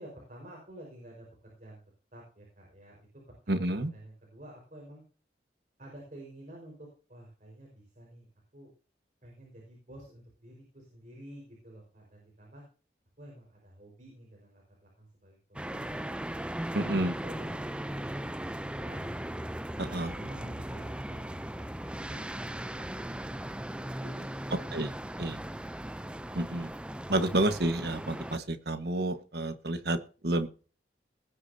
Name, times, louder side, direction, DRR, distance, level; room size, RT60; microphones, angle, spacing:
voice 1, 0.0-1.8 2.1-5.0 5.8-8.3 8.5-8.7 9.2-12.6 13.2-16.1 16.7-19.0 19.8-25.6, right 1 dB, 45° right, -2 dB, 5.0 m, -51 dB
voice 2, 3.5-3.9 16.7-17.1 19.8-20.1 24.7-24.9 25.2-25.4 26.3-26.7 27.1-30.5, right 1 dB, 65° right, 8 dB, 1.5 m, -30 dB
sound 1, 15.5-28.4, right 1 dB, 5° right, 0.5 m, -38 dB
19.0 x 9.9 x 2.8 m, 0.36 s
head